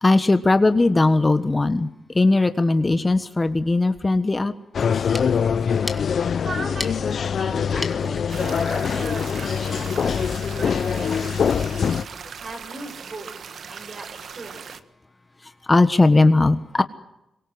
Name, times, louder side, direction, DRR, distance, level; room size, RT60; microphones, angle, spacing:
voice 1, 0.0-4.5 15.4-16.8, left 2 dB, 25° left, 10 dB, 1.3 m, -19 dB
sound 1, 4.7-12.0, left 7 dB, 60° left, 0.9 m, -23 dB
sound 2, 4.9-10.2, left 1 dB, 5° left, 2.4 m, -39 dB
voice 2, 6.4-11.8 12.4-13.3 13.6-14.6, right 2 dB, 40° right, 7 dB, 6.7 m, -38 dB
sound 3, 8.3-14.8, right 6 dB, 65° right, 1.5 m, -39 dB
25.5 x 23.5 x 7.8 m, 0.88 s
cardioid pair, 95°, 0 cm